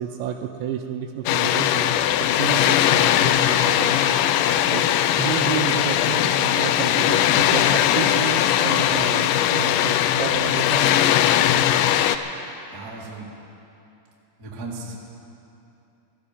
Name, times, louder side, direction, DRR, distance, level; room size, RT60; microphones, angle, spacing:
voice 1, 0.0-4.0 4.7-11.3, right 10 dB, 80° right, 6 dB, 2.7 m, -31 dB
Water, 1.3-12.2, left 11 dB, 85° left, 2.6 m, -20 dB
voice 2, 12.7-13.3 14.4-15.0, right 3 dB, 50° right, -3 dB, 1.1 m, -36 dB
18.0 x 14.5 x 5.1 m, 2.8 s
omnidirectional pair, 5.5 m